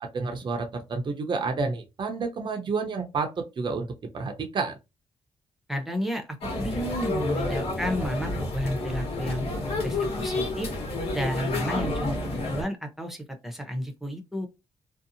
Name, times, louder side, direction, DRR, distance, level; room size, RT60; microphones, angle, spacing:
voice 1, 0.0-3.9 4.1-4.8, right 4 dB, 50° right, 0.6 m, -30 dB
voice 2, 5.7-6.3 6.5-10.7 11.1-14.5, equal, 5° right, 0.8 m, -32 dB
sound 1, 6.4-12.6, left 2 dB, 70° left, 1.1 m, -30 dB
2.6 x 2.0 x 2.7 m
cardioid pair, 80°, 11 cm